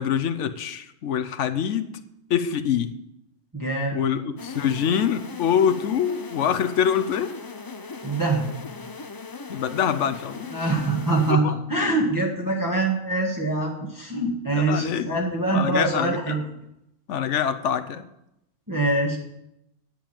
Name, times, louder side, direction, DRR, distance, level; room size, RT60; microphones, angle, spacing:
voice 1, 0.0-2.0 2.3-3.0 3.9-7.3 9.5-10.7 11.4-11.5 14.5-15.1 15.5-16.3 17.1-18.0, left 8 dB, 90° left, 9 dB, 1.0 m, -25 dB
voice 2, 3.5-4.0 8.0-8.5 10.5-16.4 18.7-19.2, right 2 dB, 15° right, -3 dB, 1.5 m, -24 dB
sound 1, 4.4-11.3, left 4 dB, 30° left, 0.4 m, -39 dB
10.0 x 7.1 x 8.9 m, 0.84 s
omnidirectional pair, 1.2 m